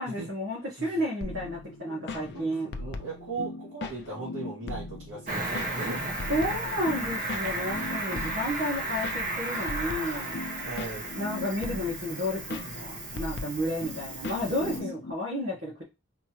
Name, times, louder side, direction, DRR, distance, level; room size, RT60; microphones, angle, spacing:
voice 1, 0.0-2.7 6.3-10.3 11.1-15.8, equal, 55° right, -4 dB, 1.5 m, -32 dB
sound 1, 1.2-15.1, left 3 dB, 55° left, 0.5 m, -39 dB
voice 2, 2.3-6.3 10.6-11.1 14.6-14.8, right 3 dB, 70° right, -6 dB, 2.6 m, -38 dB
Cricket, 5.3-14.8, right 2 dB, 40° right, 1.1 m, -34 dB
4.3 x 3.0 x 3.0 m, 0.25 s
head